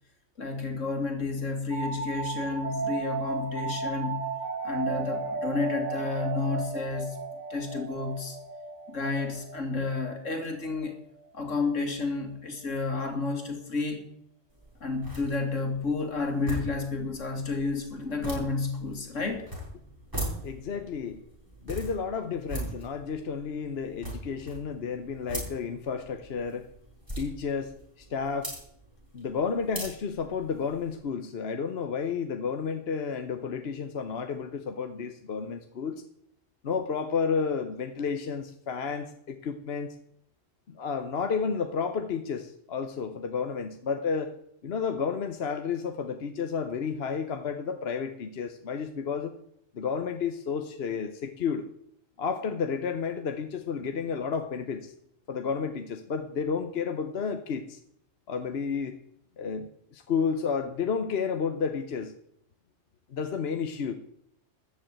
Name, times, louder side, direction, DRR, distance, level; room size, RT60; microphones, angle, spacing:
voice 1, 0.4-4.3 4.6-7.2 7.5-8.4 8.9-10.9 11.3-14.1 14.8-19.4, left 3 dB, 70° left, 5 dB, 2.6 m, -31 dB
sound 1, 1.7-11.1, right 4 dB, 70° right, 2.2 m, -35 dB
sound 2, 14.5-31.0, right 1 dB, 15° right, 6.8 m, -41 dB
voice 2, 20.4-21.2 21.6-26.7 27.2-28.5 29.1-36.0 36.6-39.9 40.7-44.4 44.6-49.3 49.7-51.7 52.2-54.9 55.3-57.8 58.3-59.0 59.4-62.1 63.1-63.9, left 6 dB, 55° left, 8 dB, 1.1 m, -31 dB
13.5 x 7.1 x 9.0 m, 0.72 s
omnidirectional pair, 1.3 m